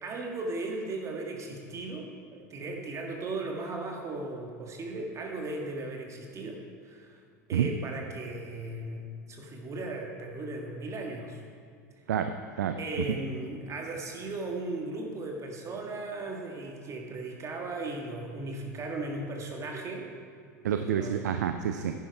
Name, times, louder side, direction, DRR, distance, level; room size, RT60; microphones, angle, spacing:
voice 1, 0.0-7.2 7.5-11.4 12.8-20.1 20.8-21.3, right 2 dB, 35° right, 1 dB, 1.9 m, -37 dB
voice 2, 12.1-12.8 20.6-21.9, right 9 dB, 75° right, 8 dB, 0.5 m, -28 dB
10.5 x 10.5 x 4.7 m, 2.3 s
hypercardioid pair, 85°, 9 cm